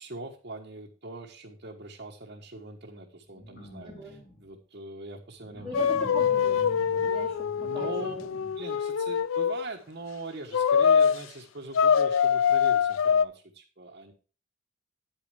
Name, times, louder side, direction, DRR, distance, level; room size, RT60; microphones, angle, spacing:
voice 1, 0.0-5.9 7.6-8.2 8.5-14.1, right 2 dB, 45° right, -2 dB, 1.3 m, -41 dB
sound 1, 3.3-4.5 5.4-8.6 9.2-9.3, equal, 40° left, 2.6 m, -47 dB
voice 2, 3.8-4.2 5.6-8.3, equal, ahead, -4 dB, 1.9 m, -40 dB
sound 2, 5.7-9.6 10.5-11.2 11.7-13.2, left 7 dB, 65° left, 0.4 m, -24 dB
9.5 x 8.8 x 3.5 m, 0.35 s
head